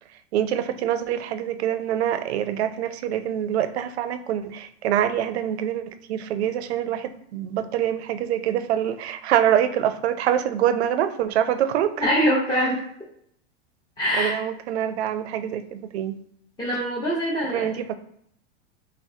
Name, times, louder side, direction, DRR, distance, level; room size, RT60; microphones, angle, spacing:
voice 1, 0.3-12.1 12.5-12.7 14.1-16.2 17.5-18.0, right 10 dB, 80° right, 10 dB, 0.5 m, -25 dB
voice 2, 12.0-12.8 14.0-14.3 16.6-17.7, equal, 10° left, -5 dB, 0.8 m, -23 dB
5.6 x 2.0 x 2.7 m, 0.68 s
hypercardioid pair, 120°, 32 cm